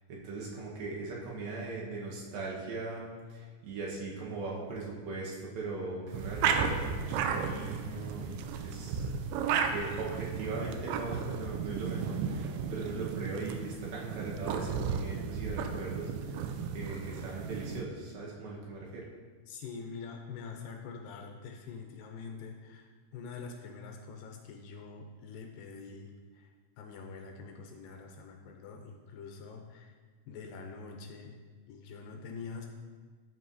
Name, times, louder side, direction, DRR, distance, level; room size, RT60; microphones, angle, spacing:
voice 1, 0.1-9.0 9.4-19.0, right 3 dB, 75° right, -4 dB, 2.9 m, -39 dB
sound 1, 6.1-17.8, right 6 dB, 90° right, 2.5 m, -34 dB
voice 2, 19.5-22.9 23.1-26.1 26.8-29.9 30.3-31.3 31.7-32.7, left 5 dB, 80° left, 3 dB, 2.1 m, -45 dB
12.0 x 5.4 x 2.7 m, 1.5 s
omnidirectional pair, 4.4 m